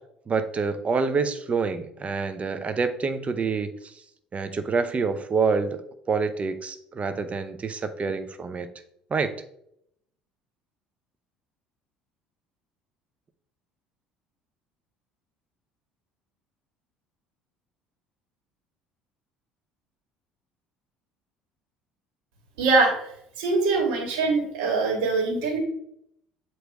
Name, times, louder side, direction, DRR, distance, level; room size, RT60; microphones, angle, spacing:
voice 1, 0.3-3.7 4.3-5.8 6.1-8.7 9.1-9.3, right 5 dB, 30° right, 11 dB, 0.7 m, -27 dB
voice 2, 22.6-22.9 23.4-25.6, right 3 dB, 70° right, 1 dB, 1.8 m, -23 dB
8.0 x 3.1 x 4.8 m, 0.73 s
figure-of-eight pair, 60°, 4 cm